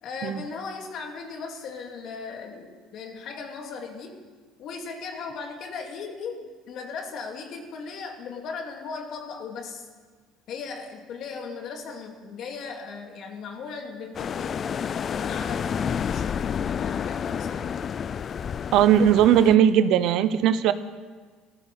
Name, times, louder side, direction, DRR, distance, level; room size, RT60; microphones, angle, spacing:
voice 1, 0.0-4.2 4.6-9.9 10.5-17.8, left 5 dB, 55° left, 3 dB, 2.6 m, -37 dB
sound 1, 14.1-19.6, left 7 dB, 35° left, 0.4 m, -30 dB
voice 2, 18.7-20.7, right 10 dB, 65° right, 13 dB, 0.8 m, -18 dB
15.0 x 13.5 x 6.9 m, 1.5 s
supercardioid pair, 110°, 0 cm